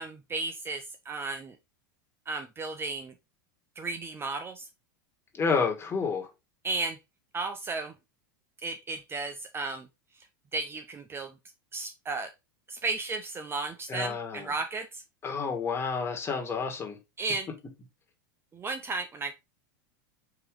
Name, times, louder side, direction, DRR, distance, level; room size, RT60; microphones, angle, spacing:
voice 1, 0.0-1.6 2.3-3.1 3.8-4.7 6.6-7.0 7.3-7.9 8.6-9.9 10.5-11.3 11.7-12.3 12.7-15.0 17.2-17.5 18.5-19.3, right 3 dB, 20° right, 0.5 m, -34 dB
voice 2, 5.3-6.3 13.9-14.5 15.2-17.0, left 5 dB, 20° left, 1.6 m, -30 dB
4.8 x 3.0 x 3.6 m
hypercardioid pair, 100°, 11 cm